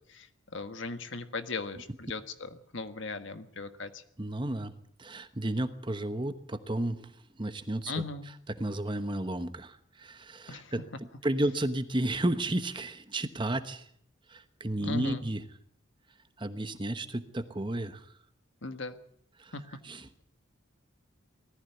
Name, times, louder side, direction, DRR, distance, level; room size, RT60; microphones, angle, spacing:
voice 1, 0.1-4.0 7.9-8.3 10.5-10.7 14.8-15.2 18.6-19.0 19.5-19.8, left 3 dB, 65° left, 9 dB, 1.6 m, -38 dB
voice 2, 4.2-7.1 7.4-7.9 8.6-10.8 11.2-13.9 14.3-15.4 16.4-18.1 19.4-19.5 19.8-20.1, right 1 dB, 25° right, 10 dB, 1.1 m, -32 dB
19.5 x 14.5 x 9.3 m, 0.69 s
head